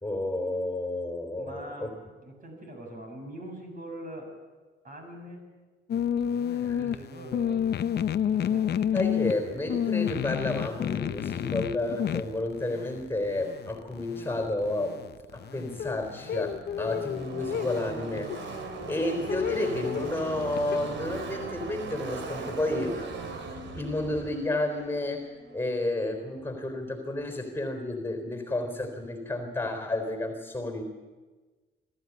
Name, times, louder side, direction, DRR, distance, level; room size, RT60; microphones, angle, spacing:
voice 1, 0.0-1.9 6.5-6.9 8.9-15.0 15.3-18.6 18.9-23.0 23.7-30.8, left 2 dB, 10° left, 5 dB, 3.7 m, -31 dB
voice 2, 1.4-4.3 4.8-5.6 6.6-7.7 8.3-9.0, right 1 dB, 45° right, 2 dB, 7.3 m, -43 dB
sound 1, 5.9-20.8, left 9 dB, 55° left, 0.8 m, -31 dB
Car passing by / Race car auto racing, 16.2-26.3, right 4 dB, 70° right, 2.8 m, -39 dB
22.0 x 14.0 x 9.6 m, 1.3 s
cardioid pair, 90°, 20 cm